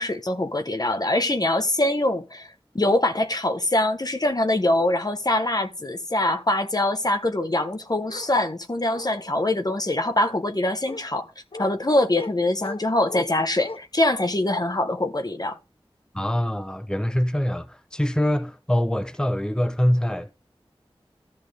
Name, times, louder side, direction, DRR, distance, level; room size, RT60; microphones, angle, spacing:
voice 1, 0.0-11.3 11.6-15.6, left 1 dB, 40° left, 1.1 m, -23 dB
Bark, 8.1-8.3 8.9-9.5 10.2-10.4 10.9-11.0 11.5-11.7 12.1-12.3 12.6-13.3 13.6-13.8, left 3 dB, 70° left, 1.0 m, -38 dB
voice 2, 16.1-20.3, equal, 10° left, 0.9 m, -24 dB
13.5 x 5.9 x 3.5 m
wide cardioid pair, 45°, 10 cm